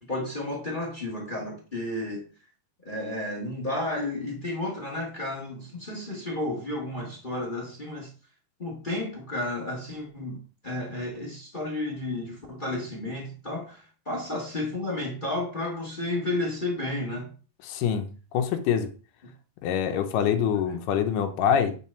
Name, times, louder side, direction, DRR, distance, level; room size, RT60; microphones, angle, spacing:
voice 1, 0.0-2.2 2.8-8.1 8.6-17.3 19.2-19.3, left 1 dB, 40° left, 0.6 m, -32 dB
voice 2, 17.6-18.1 18.3-18.9 19.6-21.8, left 8 dB, 85° left, 2.4 m, -25 dB
9.0 x 4.0 x 4.4 m
omnidirectional pair, 3.7 m